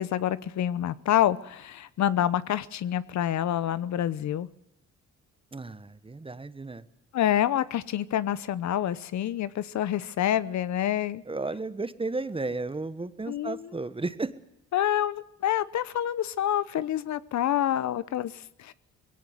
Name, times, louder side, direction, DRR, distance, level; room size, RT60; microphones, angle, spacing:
voice 1, 0.0-4.5 7.1-11.2 13.3-13.7 14.7-18.7, left 11 dB, 65° left, 17 dB, 1.0 m, -27 dB
voice 2, 5.5-6.8 11.3-14.3, right 3 dB, 20° right, 14 dB, 1.2 m, -33 dB
19.5 x 17.0 x 9.4 m, 0.83 s
cardioid pair, 90°, 30 cm